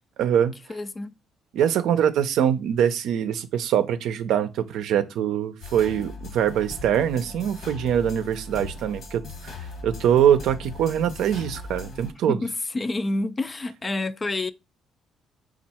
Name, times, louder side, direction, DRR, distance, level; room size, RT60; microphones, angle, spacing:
voice 1, 0.2-0.5 1.5-9.5 9.8-12.4, right 9 dB, 80° right, 0.5 m, -23 dB
voice 2, 0.7-1.2 12.3-14.5, left 2 dB, 30° left, 0.4 m, -28 dB
sound 1, 5.6-12.1, left 3 dB, 60° left, 1.3 m, -39 dB
4.4 x 2.4 x 4.2 m
cardioid pair, 75°, 0 cm